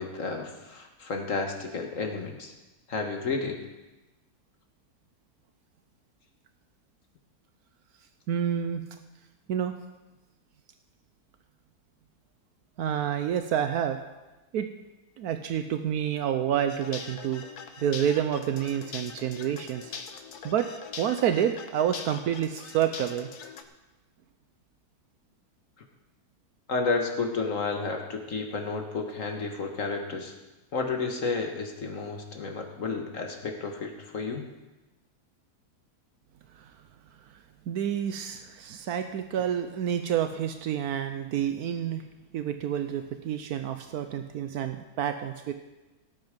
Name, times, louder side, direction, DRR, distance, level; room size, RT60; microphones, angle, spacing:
voice 1, 0.0-2.5 2.9-3.6 26.7-30.3 30.7-34.5, left 4 dB, 55° left, 3 dB, 1.9 m, -31 dB
voice 2, 8.3-8.8 9.5-9.8 12.8-14.0 14.5-14.7 15.2-17.4 17.8-19.9 20.4-20.7 21.0-23.3 36.6-36.7 37.7-42.0 42.3-45.5, right 9 dB, 80° right, 8 dB, 1.2 m, -28 dB
sound 1, 16.7-23.6, left 6 dB, 90° left, 1.5 m, -42 dB
17.5 x 8.1 x 5.2 m, 1.1 s
omnidirectional pair, 1.6 m